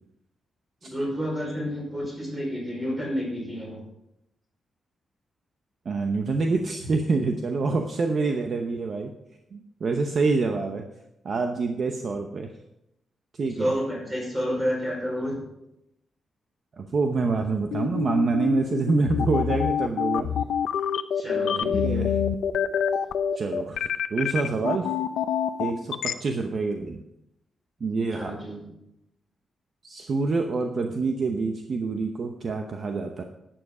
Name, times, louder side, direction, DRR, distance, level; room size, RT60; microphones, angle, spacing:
voice 1, 0.8-3.8 13.6-15.4 21.2-22.0 28.1-28.6, equal, 15° right, -2 dB, 5.3 m, -30 dB
voice 2, 5.8-9.1 9.5-10.8 11.2-12.5 13.3-13.7 16.8-20.3 21.6-22.2 23.4-24.9 25.6-25.9 26.2-27.0 27.8-28.3 29.8-33.2, right 3 dB, 45° right, 4 dB, 0.9 m, -26 dB
sound 1, 17.7-26.1, left 8 dB, 90° left, 0.6 m, -26 dB
12.0 x 8.9 x 4.9 m, 0.85 s
wide cardioid pair, 150°, 0 cm